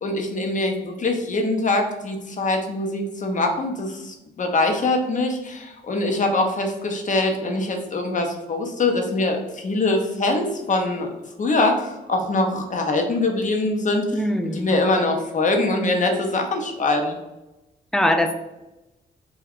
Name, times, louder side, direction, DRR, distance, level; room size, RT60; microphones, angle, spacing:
voice 1, 0.0-11.1 11.4-14.3 14.5-17.2, left 2 dB, 40° left, 3 dB, 0.7 m, -23 dB
voice 2, 14.1-14.7 17.9-18.4, equal, 5° left, 6 dB, 0.4 m, -21 dB
2.3 x 2.3 x 3.4 m, 0.96 s
supercardioid pair, 60°, 20 cm